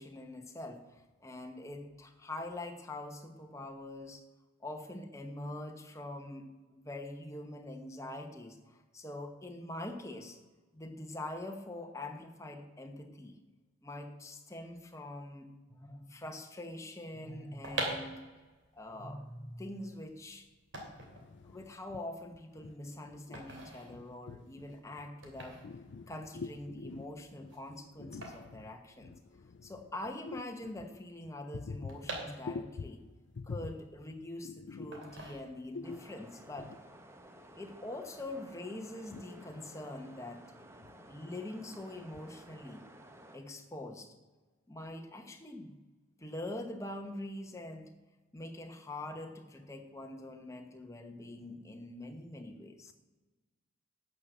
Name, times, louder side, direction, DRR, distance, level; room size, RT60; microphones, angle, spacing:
voice 1, 0.0-4.2 4.6-10.4 10.7-13.4 13.8-18.2 18.7-20.5 21.4-25.6 26.1-29.1 29.6-33.0 33.4-36.7 37.6-40.4 41.1-42.8 43.3-44.1 44.7-45.8 46.2-47.9 48.3-52.9, left 1 dB, 15° left, 1.1 m, -44 dB
sound 1, 17.4-29.5 29.8-29.9 30.1-32.9 33.3-34.4 34.9-35.9 36.3-36.6, right 2 dB, 65° right, 3.0 m, -44 dB
voice 2, 25.6-26.1 26.4-26.5 26.7-27.0 28.1-28.3 31.7-31.8 32.5-32.7 33.4-33.5 34.4-34.9 35.8-36.0, left 4 dB, 55° left, 0.4 m, -42 dB
sound 2, 35.8-43.4, right 1 dB, 15° right, 0.9 m, -55 dB
12.0 x 6.6 x 8.0 m
head